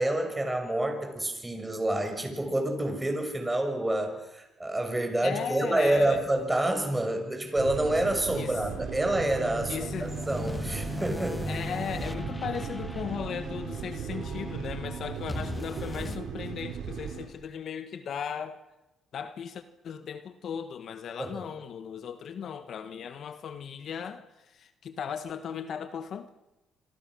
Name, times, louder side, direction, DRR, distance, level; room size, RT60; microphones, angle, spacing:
voice 1, 0.0-11.4 21.2-21.4, right 1 dB, 15° right, 6.3 m, -28 dB
voice 2, 5.2-6.2 8.4-8.5 9.7-10.1 11.4-18.6 19.1-26.3, left 7 dB, 65° left, 1.5 m, -37 dB
sound 1, 7.6-17.2, right 7 dB, 80° right, 7.5 m, -37 dB
sound 2, 9.1-16.2, left 2 dB, 10° left, 1.3 m, -38 dB
27.0 x 25.5 x 6.4 m
cardioid pair, 90°, 0 cm